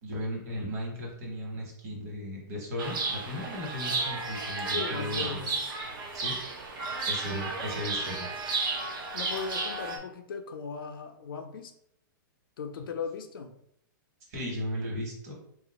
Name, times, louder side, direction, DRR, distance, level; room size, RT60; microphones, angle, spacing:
voice 1, 0.0-5.4 6.1-6.4 7.0-8.3 14.3-15.3, left 1 dB, 45° right, -1 dB, 1.2 m, -36 dB
Chirp tweet, 2.8-10.0, right 3 dB, 80° right, 0.8 m, -33 dB
voice 2, 4.7-5.6 9.1-11.7 12.6-13.5, left 5 dB, 80° left, 5 dB, 0.5 m, -37 dB
2.4 x 2.4 x 4.0 m, 0.74 s
hypercardioid pair, 160°, 11 cm